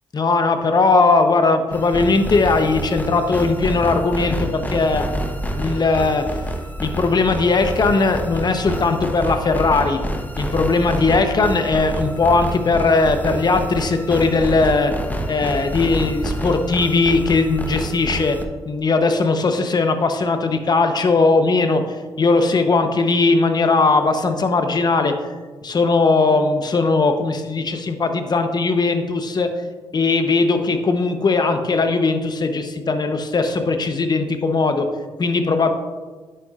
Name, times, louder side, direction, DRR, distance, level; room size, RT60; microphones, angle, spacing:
voice 1, 0.1-6.2 6.8-10.0 10.4-14.9 15.3-18.4 18.7-21.8 22.2-25.1 25.6-29.5 29.9-34.9 35.2-35.7, left 3 dB, 40° left, 7 dB, 0.9 m, -19 dB
sound 1, 1.7-18.5, equal, 15° left, 0.9 m, -28 dB
10.0 x 6.8 x 2.5 m, 1.4 s
supercardioid pair, 65°, 10 cm